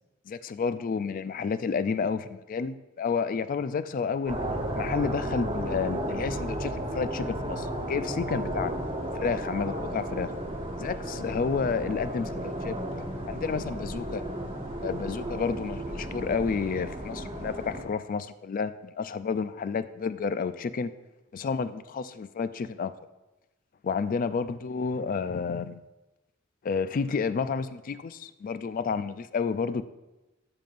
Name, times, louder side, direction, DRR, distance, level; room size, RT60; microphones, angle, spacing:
voice 1, 0.3-4.4 4.8-8.7 9.1-10.3 10.8-12.7 13.3-14.2 14.8-20.9 21.3-22.9 23.8-25.8 26.6-29.8, left 5 dB, 45° left, 13 dB, 0.3 m, -30 dB
sound 1, 4.3-17.8, right 1 dB, 30° right, 1.2 m, -33 dB
12.5 x 5.4 x 2.5 m, 1.0 s
head